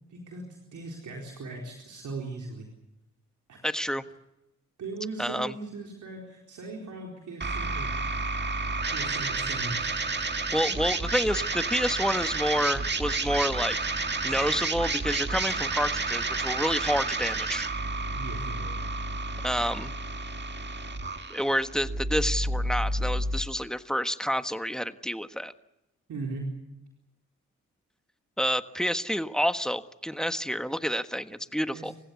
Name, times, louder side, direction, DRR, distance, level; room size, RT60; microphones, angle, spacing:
voice 1, 0.1-2.7 3.5-3.6 4.8-7.9 8.9-10.3 18.2-18.8 26.1-26.5 31.7-31.9, right 3 dB, 75° right, -1 dB, 4.2 m, -39 dB
voice 2, 3.6-4.0 5.2-5.5 10.5-13.8 14.2-17.7 19.4-19.9 21.3-25.5 28.4-31.9, equal, ahead, 10 dB, 1.4 m, -28 dB
sound 1, 7.4-23.4, right 3 dB, 35° right, 1.9 m, -30 dB
28.5 x 15.5 x 8.4 m, 0.93 s
supercardioid pair, 50°, 30 cm